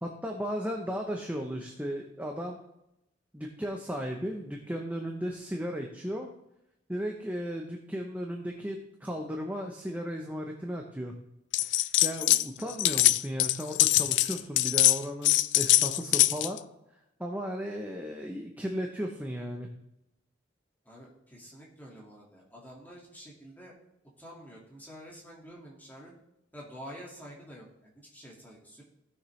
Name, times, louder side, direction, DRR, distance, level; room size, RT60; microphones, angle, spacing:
voice 1, 0.0-2.6 3.3-6.3 6.9-11.1 11.6-16.6 17.2-19.7, equal, 10° right, 1 dB, 0.8 m, -35 dB
sound 1, 11.5-12.4 12.7-16.6, left 15 dB, 65° left, 0.4 m, -23 dB
voice 2, 20.8-23.8 24.2-26.1 26.5-28.8, equal, 10° left, -4 dB, 2.1 m, -48 dB
16.5 x 6.5 x 3.2 m, 0.85 s
head